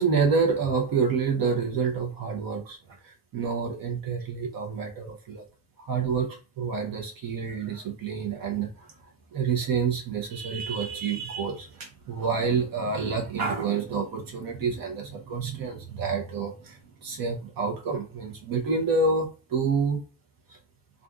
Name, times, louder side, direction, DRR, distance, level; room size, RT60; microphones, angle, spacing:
voice 1, 0.0-5.4 5.8-8.9 9.3-20.0 20.5-20.6, right 5 dB, 60° right, 1 dB, 0.9 m, -28 dB
2.5 x 2.5 x 2.4 m, 0.34 s
supercardioid pair, 60°, 40 cm